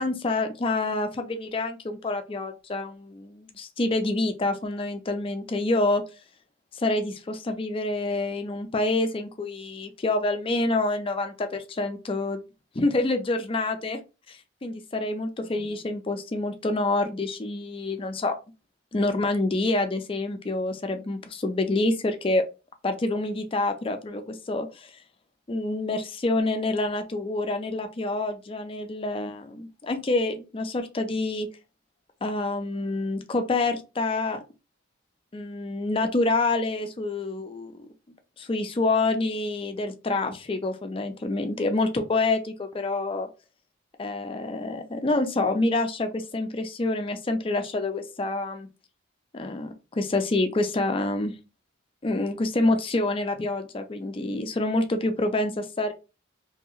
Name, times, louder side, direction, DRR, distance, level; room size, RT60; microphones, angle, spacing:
voice 1, 0.0-6.0 6.7-12.4 12.7-14.0 14.3-18.3 18.9-22.4 22.8-24.9 25.5-31.5 32.2-34.4 35.3-37.9 38.4-43.3 44.0-48.7 49.3-51.3 52.0-55.9, left 2 dB, 25° left, 7 dB, 0.4 m, -27 dB
2.8 x 2.7 x 2.4 m, 0.30 s
head